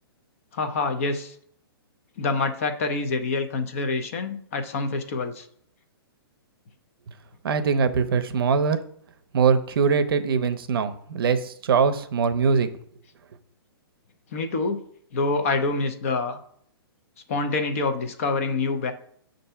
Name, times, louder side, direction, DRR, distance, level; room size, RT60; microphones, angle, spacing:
voice 1, 0.5-1.3 2.2-5.5 14.3-14.8 15.1-16.4 17.3-18.9, left 3 dB, 35° left, 7 dB, 0.5 m, -26 dB
voice 2, 7.4-8.8 9.3-12.7, right 6 dB, 65° right, 10 dB, 0.6 m, -22 dB
6.5 x 2.6 x 5.5 m, 0.63 s
hypercardioid pair, 170°, 13 cm